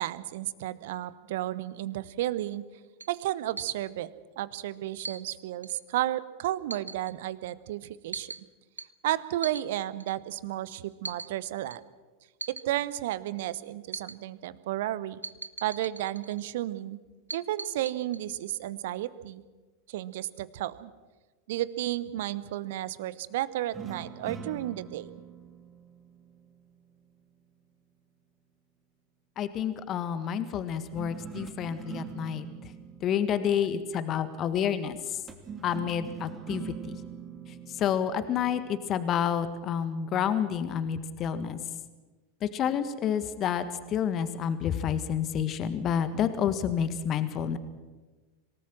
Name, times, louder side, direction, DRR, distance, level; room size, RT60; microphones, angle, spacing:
voice 1, 0.0-2.6 3.1-4.1 4.4-8.3 9.0-11.8 12.5-15.2 15.6-17.0 17.3-19.4 19.9-20.9 21.5-25.1, right 14 dB, 60° right, 17 dB, 0.9 m, -32 dB
sound 1, 3.0-3.1 3.6-3.7 5.0-5.2 5.6-5.8 6.7-7.1 8.1-8.4 8.8-8.9 9.4-9.6 10.0-10.2 11.0-11.3 11.7-11.8 12.4-12.6 13.9-14.2 15.2-16.5 17.3-18.2, right 3 dB, 85° right, 0.6 m, -39 dB
sound 2, 23.7-27.1 30.9-34.4 35.3-39.1, right 6 dB, 25° right, 2.9 m, -44 dB
voice 2, 29.4-32.7 33.0-35.2 35.6-37.0 37.5-41.6 42.4-47.6, left 8 dB, 35° left, 11 dB, 1.6 m, -29 dB
26.5 x 18.5 x 6.2 m, 1.3 s
figure-of-eight pair, 85°, 0 cm